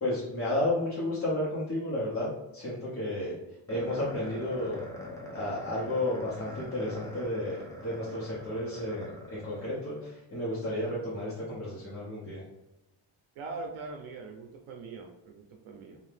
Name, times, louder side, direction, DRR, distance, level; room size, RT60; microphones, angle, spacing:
voice 1, 0.0-3.4 3.7-4.8 5.3-12.4, left 1 dB, 30° left, -9 dB, 0.9 m, -32 dB
sound 1, 3.7-10.1, left 1 dB, 5° left, 0.5 m, -43 dB
voice 2, 13.4-16.0, right 3 dB, 90° right, 2 dB, 0.6 m, -42 dB
2.6 x 2.3 x 3.4 m, 0.89 s
cardioid pair, 125°, 47 cm